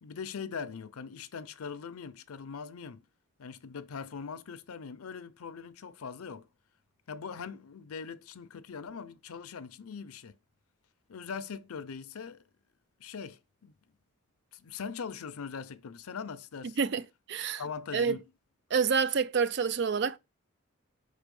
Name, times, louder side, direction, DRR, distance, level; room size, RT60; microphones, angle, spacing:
voice 1, 0.0-3.0 3.4-6.5 7.1-10.4 11.1-12.4 13.0-13.7 14.5-16.8 17.6-18.2, left 6 dB, 90° left, 0.5 m, -41 dB
voice 2, 17.3-17.6 17.9-18.2 18.7-20.2, right 6 dB, 50° right, 0.4 m, -27 dB
5.1 x 4.1 x 5.3 m
head